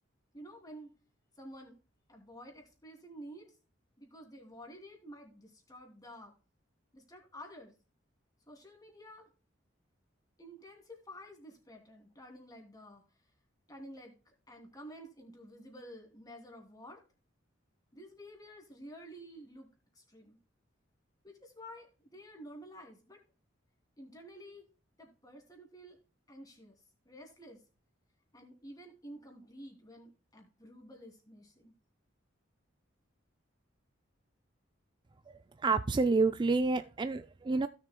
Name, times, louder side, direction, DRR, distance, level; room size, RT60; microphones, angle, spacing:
voice 1, 0.3-0.9 1.4-1.8 2.1-3.5 4.0-6.3 6.9-7.7 8.5-9.3 10.4-13.0 13.7-17.0 17.9-19.7 19.9-20.4 21.2-23.2 24.0-24.6 25.0-26.0 26.3-26.8 27.0-27.6 28.3-31.7, equal, 20° left, 2.8 m, -51 dB
voice 2, 35.6-37.7, right 3 dB, 25° right, 0.4 m, -28 dB
16.0 x 6.7 x 2.2 m
head